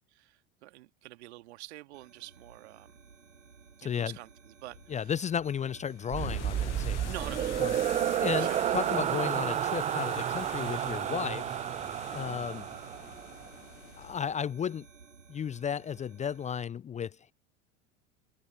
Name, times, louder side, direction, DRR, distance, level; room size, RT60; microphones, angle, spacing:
voice 1, 0.1-2.9 3.8-5.1 7.1-8.6 12.1-12.4, right 18 dB, 60° right, 2.1 m, -47 dB
sound 1, 1.9-16.6, right 5 dB, 80° right, 5.3 m, -54 dB
voice 2, 3.8-4.2 4.9-7.1 7.6-7.8 8.2-11.6 12.1-12.7 14.0-14.9 15.3-17.2, left 8 dB, 20° left, 0.7 m, -34 dB
sound 2, 4.7-14.4, left 16 dB, 65° left, 0.8 m, -46 dB
sound 3, 6.1-13.5, right 11 dB, 20° right, 0.5 m, -31 dB
figure-of-eight pair, 80°, 38 cm